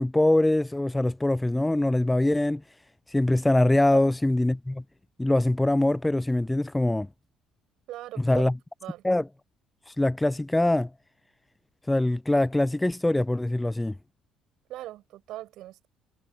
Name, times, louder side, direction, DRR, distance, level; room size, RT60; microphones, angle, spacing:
voice 1, 0.0-2.6 3.1-4.8 5.2-7.1 8.2-8.5 9.0-9.3 9.9-10.9 11.9-13.9, left 1 dB, 10° left, 0.6 m, -23 dB
voice 2, 7.9-8.5 8.8-9.0 14.7-15.9, right 14 dB, 60° right, 6.0 m, -40 dB
figure-of-eight pair, 50°, 0 cm